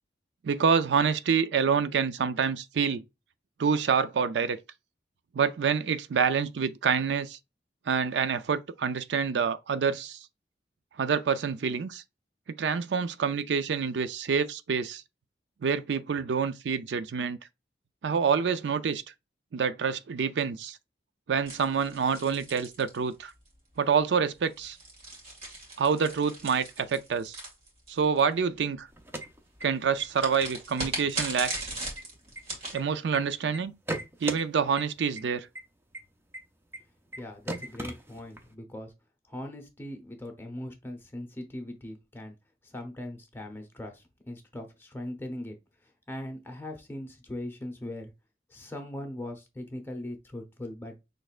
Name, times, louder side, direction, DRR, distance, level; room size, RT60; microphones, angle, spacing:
voice 1, 0.4-3.0 3.6-4.6 5.3-7.4 7.9-10.2 11.0-12.0 12.6-15.0 15.6-17.4 18.0-19.0 19.5-20.8 21.3-23.3 23.8-24.8 25.8-27.4 27.9-28.9 29.6-31.7 32.7-33.7 34.2-35.5, right 6 dB, 80° right, 0.4 m, -27 dB
sound 1, 21.5-23.5 24.4-28.2 30.1-32.8, right 1 dB, 35° right, 2.0 m, -38 dB
sound 2, 28.9-30.0 30.4-30.5 30.8-31.2 31.6-33.2 33.5-34.4 34.8-34.9 35.2-35.3 35.5-35.6 35.9-36.0 36.3-36.4 36.7-36.8 37.1-37.2 37.5-38.5, right 1 dB, 15° right, 0.5 m, -37 dB
voice 2, 37.2-38.9 39.3-42.3 42.6-45.6 45.8-48.1 48.5-50.9, left 1 dB, 15° left, 0.9 m, -40 dB
6.3 x 3.3 x 2.4 m
head